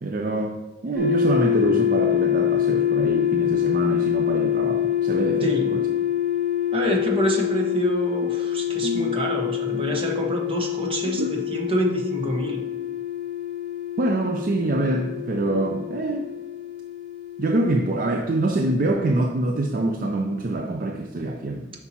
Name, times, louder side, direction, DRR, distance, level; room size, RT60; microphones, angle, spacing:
voice 1, 0.0-5.8 8.2-8.3 8.8-9.2 9.7-9.9 11.2-11.4 14.0-16.3 17.4-21.7, right 2 dB, 50° right, 4 dB, 0.4 m, -25 dB
sound 1, 0.9-18.9, left 10 dB, 5° right, 1.8 m, -26 dB
voice 2, 5.4-5.8 6.7-12.6, equal, 30° right, 0 dB, 1.2 m, -26 dB
8.2 x 5.9 x 2.9 m, 1.2 s
head